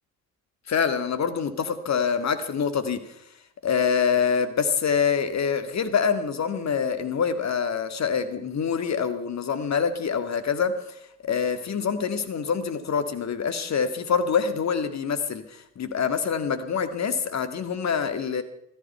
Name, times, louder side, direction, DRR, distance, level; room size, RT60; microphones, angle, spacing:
voice 1, 0.7-3.0 3.6-11.0 11.2-18.4, left 6 dB, 40° left, 10 dB, 2.0 m, -25 dB
17.5 x 13.5 x 5.6 m, 0.77 s
figure-of-eight pair, 50°, 43 cm